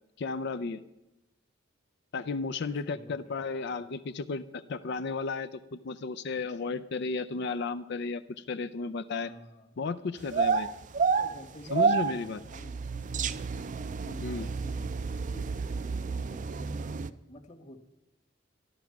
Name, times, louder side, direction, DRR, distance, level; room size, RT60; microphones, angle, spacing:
voice 1, 0.2-0.8 2.1-9.3 9.8-10.7 11.7-12.4 14.2-14.5, left 4 dB, 60° left, 12 dB, 0.5 m, -34 dB
voice 2, 2.7-3.6 9.2-9.8 11.1-17.8, equal, 40° left, 7 dB, 1.6 m, -50 dB
sound 1, 10.2-17.1, right 5 dB, 40° right, 0.4 m, -30 dB
12.5 x 12.0 x 5.9 m, 0.95 s
head